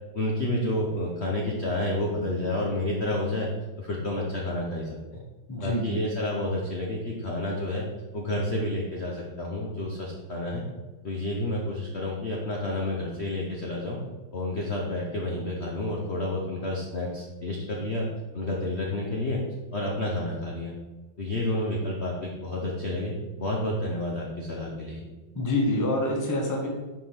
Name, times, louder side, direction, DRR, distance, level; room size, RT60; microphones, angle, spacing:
voice 1, 0.1-3.5 3.8-5.2 5.6-7.8 8.1-10.6 11.0-14.0 14.3-18.1 18.3-19.4 19.7-20.7 21.2-25.0, left 1 dB, 45° left, -2 dB, 0.9 m, -30 dB
voice 2, 5.5-6.0 25.3-26.7, left 1 dB, 10° left, 0 dB, 0.9 m, -26 dB
5.2 x 5.2 x 5.7 m, 1.2 s
omnidirectional pair, 2.2 m